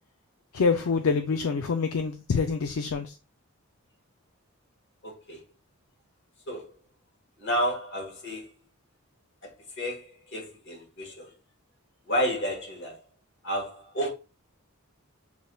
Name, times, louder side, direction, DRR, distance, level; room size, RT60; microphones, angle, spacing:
voice 1, 0.5-3.2, left 5 dB, 70° left, 0.4 m, -26 dB
voice 2, 5.0-5.4 6.5-6.7 7.4-8.5 9.4-11.3 12.1-13.0 13.4-14.1, equal, 50° left, 1.4 m, -31 dB
6.4 x 3.4 x 2.3 m
head